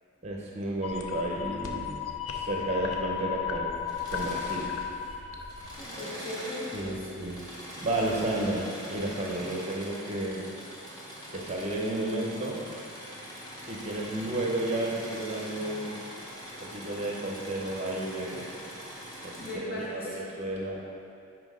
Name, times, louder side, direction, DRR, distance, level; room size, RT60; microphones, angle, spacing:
voice 1, 0.2-2.0 2.3-4.7 6.7-7.4 7.8-10.5 11.3-12.6 13.6-16.0 16.6-18.6 19.2-20.8, right 1 dB, 30° right, -3 dB, 0.7 m, -32 dB
scaryscape liquidmistery, 0.8-5.9, left 8 dB, 80° left, 0.6 m, -34 dB
Engine / Mechanisms, 3.8-5.1 5.4-19.5, equal, 20° left, 1.1 m, -43 dB
voice 2, 5.7-7.1 19.4-20.2, left 1 dB, 45° left, -7 dB, 1.6 m, -38 dB
6.1 x 4.5 x 5.0 m, 2.5 s
head